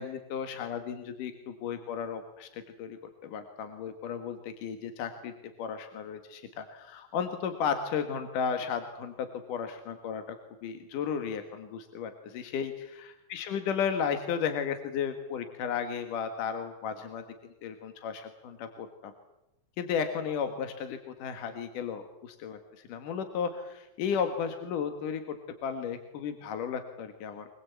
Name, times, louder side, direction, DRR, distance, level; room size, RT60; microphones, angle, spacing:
voice 1, 0.0-5.3 5.6-10.4 10.6-17.2 17.6-19.1 19.8-25.4 25.6-27.5, left 7 dB, 80° left, 7 dB, 3.2 m, -34 dB
24.0 x 22.5 x 8.4 m, 0.92 s
omnidirectional pair, 3.7 m